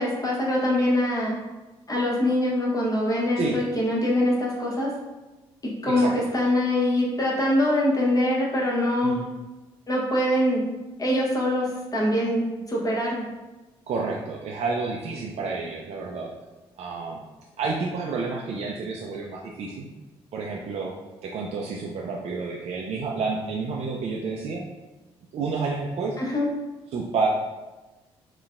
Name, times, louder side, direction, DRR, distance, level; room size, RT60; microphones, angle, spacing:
voice 1, 0.0-1.4 1.9-4.9 5.6-9.2 9.9-10.6 11.0-13.3 26.2-26.5, left 1 dB, 25° left, -3 dB, 1.0 m, -23 dB
voice 2, 13.9-16.3 16.8-17.2 17.6-19.9 20.3-20.9 21.2-24.6 25.3-26.2 26.9-27.3, right 4 dB, 50° right, -2 dB, 0.4 m, -29 dB
3.9 x 2.2 x 2.4 m, 1.1 s
hypercardioid pair, 50°, 13 cm